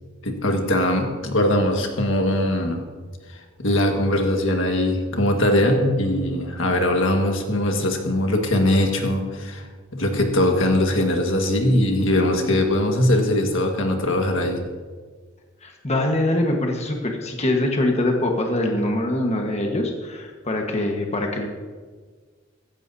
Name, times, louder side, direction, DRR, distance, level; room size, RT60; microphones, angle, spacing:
voice 1, 0.2-2.8 3.3-9.7 9.9-14.6, left 1 dB, 80° left, 3 dB, 1.7 m, -21 dB
voice 2, 15.6-21.5, left 1 dB, 35° left, 2 dB, 1.4 m, -23 dB
15.0 x 14.5 x 2.8 m, 1.5 s
head